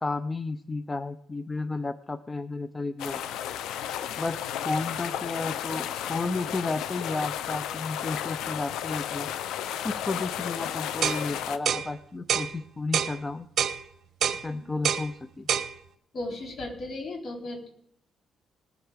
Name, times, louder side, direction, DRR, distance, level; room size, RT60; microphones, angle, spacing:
voice 1, 0.0-3.2 4.2-9.3 9.8-13.5 14.4-15.5, left 3 dB, 20° left, 13 dB, 0.5 m, -32 dB
sound 1, 3.0-11.6, left 10 dB, 85° left, 0.7 m, -33 dB
sound 2, 11.0-11.2 11.7-11.9 12.3-12.5 12.9-13.2 13.6-13.8 14.2-14.4 14.8-15.1 15.5-15.7, right 8 dB, 60° right, 1.0 m, -26 dB
voice 2, 16.1-17.7, left 2 dB, 50° left, 1 dB, 4.0 m, -35 dB
19.0 x 8.0 x 5.1 m, 0.71 s
cardioid pair, 90°, 0 cm